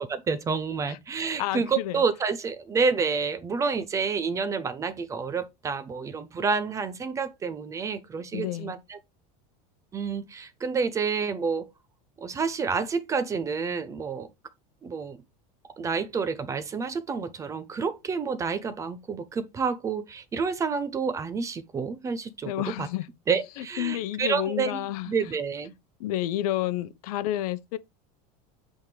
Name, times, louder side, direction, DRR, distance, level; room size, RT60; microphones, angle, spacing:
voice 1, 0.0-9.0 9.9-11.7 12.2-14.3 14.8-15.2 15.8-22.9 23.3-25.7, right 5 dB, 15° right, 0.5 m, -29 dB
voice 2, 1.4-2.0 8.3-8.8 22.5-23.1 23.6-25.1 26.0-27.8, left 13 dB, 75° left, 0.8 m, -30 dB
8.2 x 3.6 x 3.2 m
supercardioid pair, 165°, 19 cm